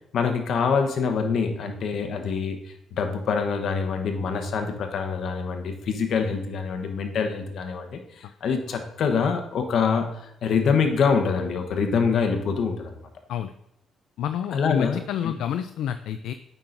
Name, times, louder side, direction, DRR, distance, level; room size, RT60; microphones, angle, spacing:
voice 1, 0.1-2.6 3.0-12.9 14.5-15.3, left 5 dB, 70° left, 5 dB, 1.0 m, -25 dB
voice 2, 14.2-16.3, left 9 dB, 85° left, 9 dB, 0.3 m, -28 dB
8.9 x 5.5 x 2.6 m, 0.77 s
cardioid pair, 90°, 0 cm